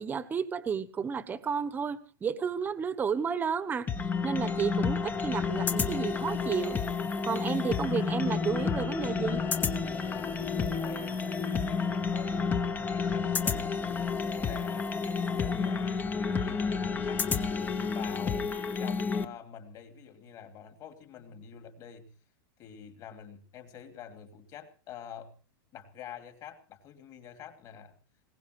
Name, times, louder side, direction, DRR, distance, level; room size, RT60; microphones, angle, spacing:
voice 1, 0.0-3.9 4.2-6.8 7.2-9.4, right 6 dB, 15° right, 13 dB, 1.2 m, -32 dB
sound 1, 3.9-19.3, left 5 dB, 15° left, 1.0 m, -30 dB
voice 2, 10.3-13.6 14.3-17.3 17.9-18.5 18.8-22.1 22.6-25.3 25.7-28.0, left 8 dB, 30° left, 6 dB, 2.6 m, -47 dB
21.0 x 19.5 x 3.2 m, 0.38 s
supercardioid pair, 155°, 12 cm